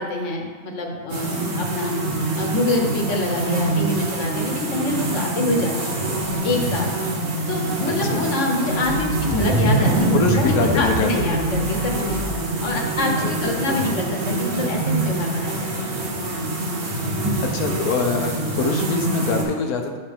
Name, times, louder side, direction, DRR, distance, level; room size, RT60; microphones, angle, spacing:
voice 1, 0.0-1.9 2.3-6.9 7.5-12.2 12.6-16.0, left 2 dB, 60° left, 1 dB, 1.3 m, -26 dB
sound 1, 1.1-19.4, right 2 dB, 80° right, 1.7 m, -25 dB
sound 2, 8.9-12.6, right 3 dB, 5° right, 1.3 m, -24 dB
voice 2, 10.1-11.4 13.2-13.3 17.4-20.0, left 5 dB, 90° left, 4 dB, 1.2 m, -24 dB
8.3 x 5.7 x 3.5 m, 1.5 s
omnidirectional pair, 1.5 m